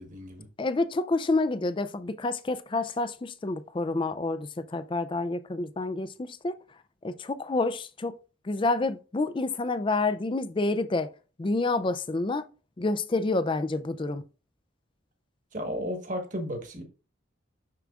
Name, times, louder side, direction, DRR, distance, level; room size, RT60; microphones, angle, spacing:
voice 1, 0.0-0.5 15.5-16.8, equal, 35° right, 1.3 m, -34 dB
voice 2, 0.6-6.6 7.0-8.1 8.4-11.1 11.4-12.5 12.8-14.2, left 2 dB, 25° left, 0.3 m, -28 dB
6.7 x 6.3 x 2.4 m
head